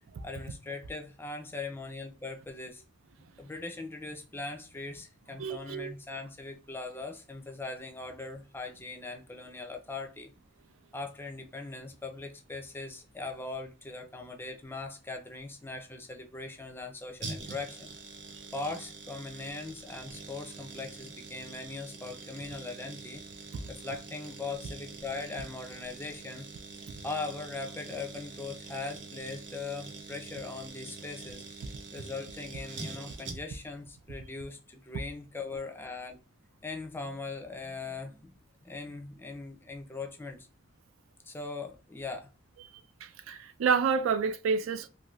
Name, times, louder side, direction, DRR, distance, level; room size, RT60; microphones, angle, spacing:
voice 1, 0.2-2.8 3.2-10.3 10.9-17.9 18.5-23.2 23.7-26.5 27.0-31.4 31.9-36.2 36.6-38.3 38.6-40.5 41.2-42.3, left 3 dB, 10° left, 0.4 m, -40 dB
voice 2, 5.4-5.9 43.0-44.9, right 5 dB, 80° right, 0.4 m, -29 dB
sound 1, 17.2-33.7 34.0-34.1, right 4 dB, 60° right, 0.8 m, -45 dB
2.6 x 2.5 x 3.0 m
head